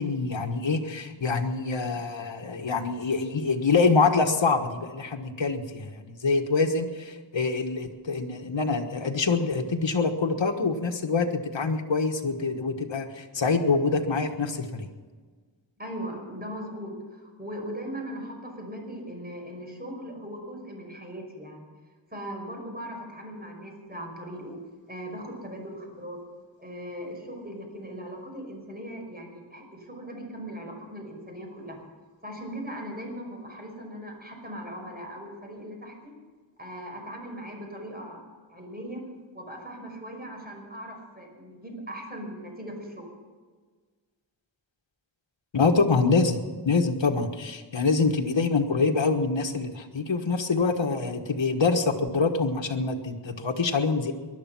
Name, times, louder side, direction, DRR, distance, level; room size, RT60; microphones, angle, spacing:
voice 1, 0.0-14.9 45.5-46.4 46.6-54.1, left 4 dB, 70° left, 3 dB, 1.5 m, -25 dB
voice 2, 15.8-21.7 22.1-24.6 24.9-26.2 26.6-31.8 32.2-36.1 36.6-38.2 38.5-39.0 39.3-43.1, equal, 20° right, 1 dB, 5.5 m, -39 dB
20.0 x 12.0 x 6.0 m, 1.5 s
wide cardioid pair, 55°, 46 cm